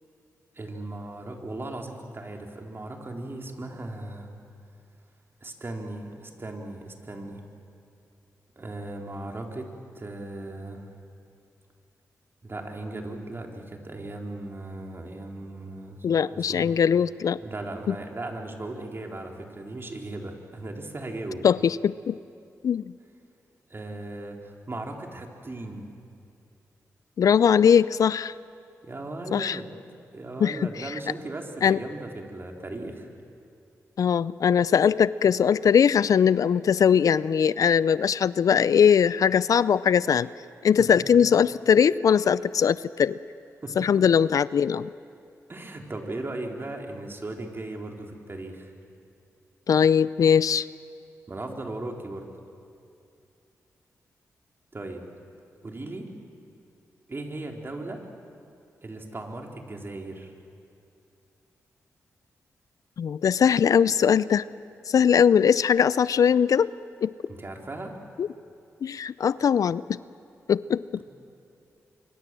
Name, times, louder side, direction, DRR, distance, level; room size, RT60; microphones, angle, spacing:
voice 1, 0.6-4.3 5.4-7.4 8.6-10.8 12.4-16.0 16.3-16.7 17.4-21.4 23.7-25.9 28.8-29.7 30.1-33.1 43.6-43.9 45.5-48.7 51.3-52.3 54.7-55.0 55.6-56.1 57.1-58.0 58.8-60.3 67.3-67.9, right 2 dB, 40° right, 2 dB, 3.9 m, -37 dB
voice 2, 16.0-17.4 17.9-18.0 21.4-22.2 22.6-22.9 27.2-28.3 29.3-29.6 30.4-30.9 31.6-31.8 34.0-40.3 40.6-43.2 43.8-44.9 49.7-50.7 63.0-64.5 64.9-66.7 67.0-67.1 68.2-68.3 68.8-70.0 70.5-70.8, left 7 dB, 70° left, 18 dB, 0.5 m, -21 dB
25.0 x 24.5 x 7.6 m, 2.6 s
cardioid pair, 50°, 6 cm